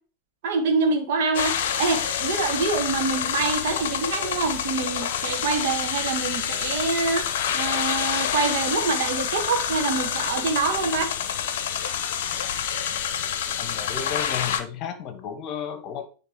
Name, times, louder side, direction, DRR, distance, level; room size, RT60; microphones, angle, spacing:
voice 1, 0.4-7.3 7.5-11.1, right 4 dB, 55° right, 5 dB, 1.5 m, -25 dB
sound 1, 1.3-14.6, left 9 dB, 55° left, 0.7 m, -27 dB
voice 2, 13.6-16.1, left 8 dB, 35° left, 9 dB, 1.1 m, -33 dB
9.4 x 3.3 x 4.4 m, 0.38 s
figure-of-eight pair, 90°, 0 cm